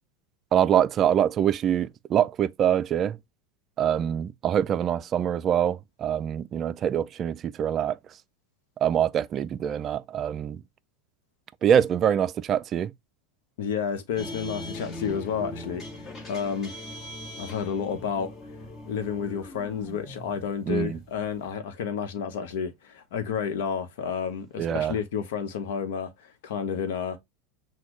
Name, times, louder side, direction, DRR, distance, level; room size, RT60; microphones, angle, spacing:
voice 1, 0.5-3.2 3.8-8.0 8.8-10.6 11.6-12.9 20.7-21.0 24.6-25.0, right 9 dB, 35° right, 0.3 m, -24 dB
voice 2, 13.6-16.7 17.4-18.3 18.9-27.2, left 7 dB, 75° left, 1.0 m, -31 dB
sound 1, 14.2-21.5, left 1 dB, 25° left, 1.5 m, -40 dB
6.1 x 2.3 x 3.0 m
supercardioid pair, 120°, 0 cm